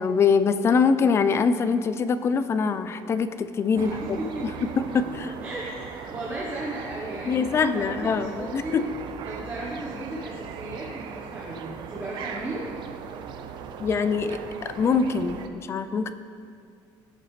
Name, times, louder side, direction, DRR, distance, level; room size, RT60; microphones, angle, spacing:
voice 1, 0.0-4.2 4.6-4.7 4.9-5.3 7.2-8.9 13.8-16.1, left 5 dB, 30° left, 11 dB, 0.4 m, -23 dB
sound 1, 3.7-15.5, right 6 dB, 55° right, 0.6 m, -39 dB
voice 2, 3.8-4.7 5.4-8.8 9.2-12.7, right 1 dB, 20° right, -5 dB, 1.1 m, -35 dB
16.5 x 6.9 x 3.3 m, 2.4 s
cardioid pair, 160°, 9 cm